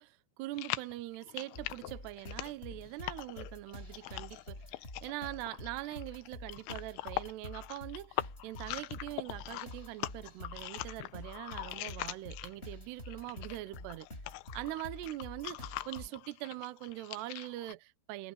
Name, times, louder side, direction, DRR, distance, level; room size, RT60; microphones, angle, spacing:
voice 1, 0.0-14.1 14.5-18.3, right 16 dB, 75° right, 2.7 m, -43 dB
sound 1, 0.5-12.7 13.1-17.7, left 18 dB, 80° left, 2.8 m, -42 dB
sound 2, 1.5-16.1, left 1 dB, 10° left, 5.8 m, -48 dB
omnidirectional pair, 5.7 m